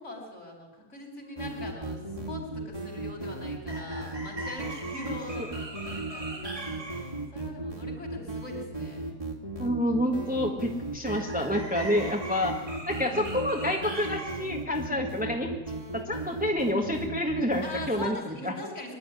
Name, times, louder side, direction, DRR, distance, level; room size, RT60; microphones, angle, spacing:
voice 1, 0.0-6.8 7.3-9.0 17.6-18.9, left 2 dB, 55° left, 1 dB, 5.2 m, -42 dB
sound 1, 1.4-18.1, right 2 dB, 25° right, 2.4 m, -35 dB
voice 2, 9.6-12.5 12.8-15.5 15.9-18.2 18.4-18.5, left 1 dB, 5° right, 2 dB, 1.6 m, -28 dB
22.5 x 11.5 x 9.8 m, 1.1 s
omnidirectional pair, 1.4 m